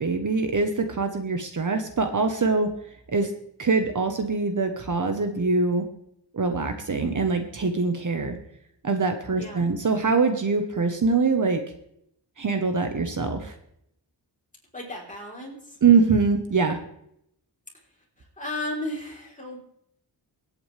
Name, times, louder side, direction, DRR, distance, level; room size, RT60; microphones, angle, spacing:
voice 1, 0.0-2.7 3.1-3.3 3.6-5.9 6.3-8.4 8.8-11.6 12.4-13.5 15.8-16.8, right 4 dB, 50° right, 6 dB, 1.2 m, -23 dB
voice 2, 9.4-9.7 14.7-15.8 17.7-19.6, left 1 dB, 20° left, -2 dB, 3.7 m, -35 dB
24.0 x 8.8 x 3.3 m, 0.74 s
wide cardioid pair, 145°, 41 cm